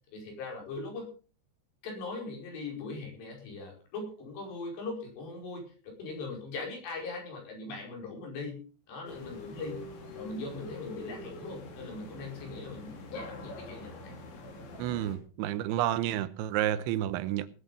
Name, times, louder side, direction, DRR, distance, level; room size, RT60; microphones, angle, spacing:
voice 1, 0.1-1.1 1.8-5.7 6.0-8.6 8.9-9.8 10.1-14.1, left 3 dB, 65° left, 7.1 m, -40 dB
sound 1, 9.1-15.2, left 2 dB, 85° left, 5.8 m, -44 dB
voice 2, 14.8-17.5, right 12 dB, 85° right, 3.2 m, -30 dB
19.5 x 9.1 x 5.4 m
omnidirectional pair, 5.3 m